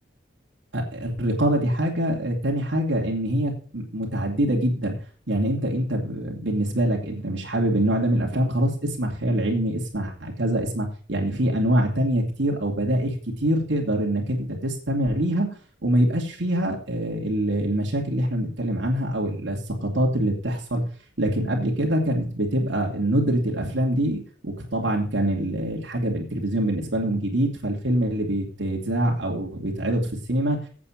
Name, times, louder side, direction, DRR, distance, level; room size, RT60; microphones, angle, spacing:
voice 1, 0.7-4.9 5.3-15.5 15.8-20.8 21.2-30.6, right 1 dB, 75° right, -1 dB, 2.7 m, -24 dB
8.6 x 7.0 x 7.2 m, 0.42 s
head